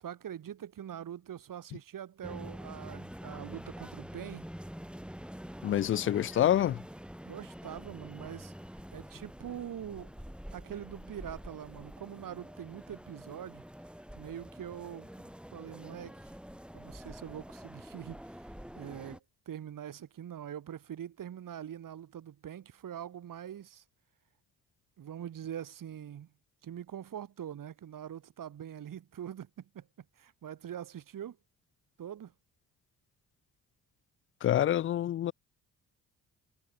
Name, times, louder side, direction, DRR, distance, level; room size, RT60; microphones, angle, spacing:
voice 1, 0.0-4.5 7.2-8.5 8.9-10.1 10.5-13.6 14.1-16.3 16.7-23.8 25.0-26.3 26.6-29.9 30.2-31.4 32.0-32.3, right 10 dB, 50° right, 1.5 m, -43 dB
sound 1, 2.2-19.2, equal, ahead, 4.0 m, -46 dB
voice 2, 5.6-6.8 34.4-35.3, left 11 dB, 30° left, 0.4 m, -27 dB
hypercardioid pair, 45°, 43 cm